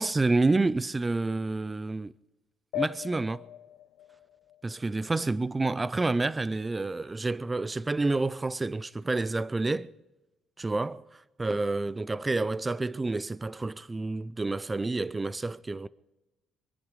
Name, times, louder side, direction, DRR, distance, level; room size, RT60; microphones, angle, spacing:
voice 1, 0.0-2.1 2.8-3.4 4.6-9.9 10.6-11.0 11.4-15.9, right 3 dB, 15° right, 0.4 m, -29 dB
sound 1, 2.7-5.7, left 13 dB, 85° left, 0.4 m, -40 dB
26.0 x 10.5 x 4.8 m
cardioid pair, 130°, 0 cm